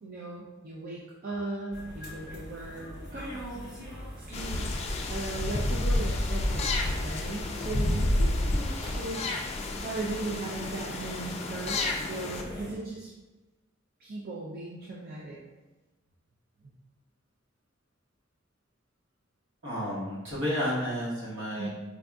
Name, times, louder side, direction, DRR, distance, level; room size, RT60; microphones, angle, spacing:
voice 1, 0.0-3.7 4.2-4.7 5.1-6.7 7.0-13.1 14.0-15.4 21.6-21.7, right 2 dB, 50° right, -4 dB, 0.4 m, -38 dB
sound 1, 1.7-12.8, equal, 20° right, 0.8 m, -44 dB
sound 2, 4.3-12.4, left 1 dB, 30° left, 0.3 m, -30 dB
voice 2, 19.6-21.7, equal, 75° right, -7 dB, 1.3 m, -31 dB
4.5 x 2.5 x 2.3 m, 1.1 s
head